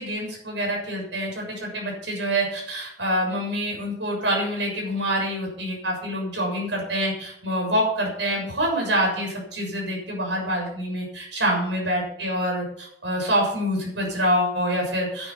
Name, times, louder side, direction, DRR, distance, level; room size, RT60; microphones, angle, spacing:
voice 1, 0.0-15.3, equal, 90° right, 0 dB, 6.9 m, -26 dB
11.5 x 10.5 x 5.7 m, 0.71 s
head